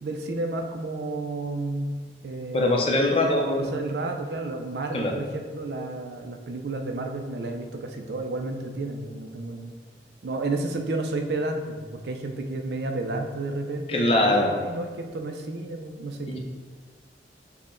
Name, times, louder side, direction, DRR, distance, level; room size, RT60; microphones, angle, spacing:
voice 1, 0.0-1.9 2.2-2.8 3.6-9.8 10.2-16.4, right 2 dB, 70° right, 4 dB, 0.4 m, -31 dB
voice 2, 2.5-3.7 4.9-5.1 13.9-14.6 16.3-16.4, left 1 dB, 30° left, 0 dB, 0.5 m, -22 dB
5.8 x 2.1 x 3.6 m, 1.5 s
head